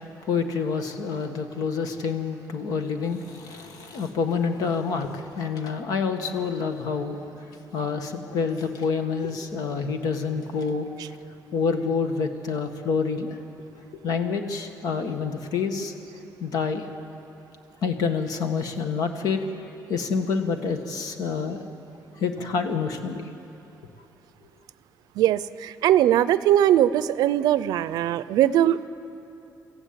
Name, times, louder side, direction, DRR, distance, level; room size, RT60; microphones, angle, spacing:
voice 1, 0.3-10.9 11.5-13.4 14.0-15.9 16.4-16.9 17.8-19.5 19.9-21.6 22.2-23.3, left 5 dB, 70° left, 6 dB, 1.7 m, -27 dB
voice 2, 25.2-28.9, right 12 dB, 85° right, 16 dB, 0.6 m, -20 dB
23.5 x 15.0 x 8.8 m, 2.8 s
cardioid pair, 120°, 7 cm